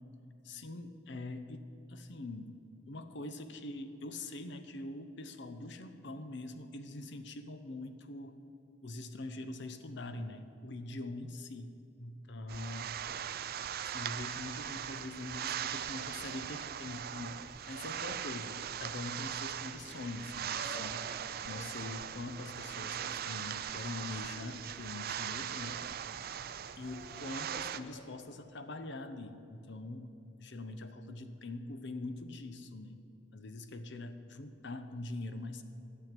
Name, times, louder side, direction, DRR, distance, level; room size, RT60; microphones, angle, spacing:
voice 1, 0.4-2.6 2.9-8.4 8.8-13.0 13.8-21.0 21.4-25.8 26.8-30.1 30.4-33.0 33.3-35.6, left 2 dB, 65° left, 9 dB, 0.8 m, -43 dB
sound 1, 12.5-27.8, right 9 dB, 50° right, 0.4 m, -40 dB
sound 2, 20.5-21.1 21.4-22.1 22.7-23.6 24.4-25.4 26.8-28.1, equal, 25° left, 2.7 m, -52 dB
12.0 x 7.7 x 7.6 m, 2.9 s
head